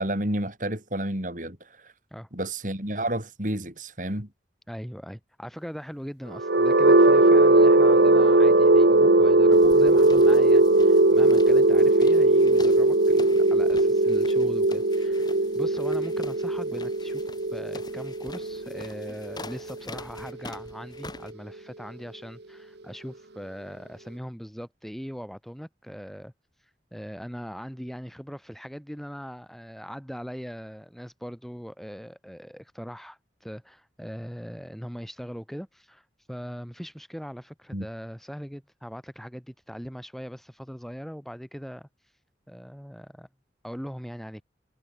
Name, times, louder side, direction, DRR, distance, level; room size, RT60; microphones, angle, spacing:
voice 1, 0.0-1.9 2.3-4.3 37.7-37.9, right 1 dB, 45° right, 4.6 m, -30 dB
voice 2, 4.7-17.2 17.5-26.3 26.9-41.9 42.5-43.3 43.6-44.4, equal, ahead, 3.4 m, -40 dB
sound 1, 6.3-20.2, right 2 dB, 70° right, 1.4 m, -19 dB
sound 2, 9.5-21.3, left 2 dB, 25° left, 7.7 m, -46 dB
head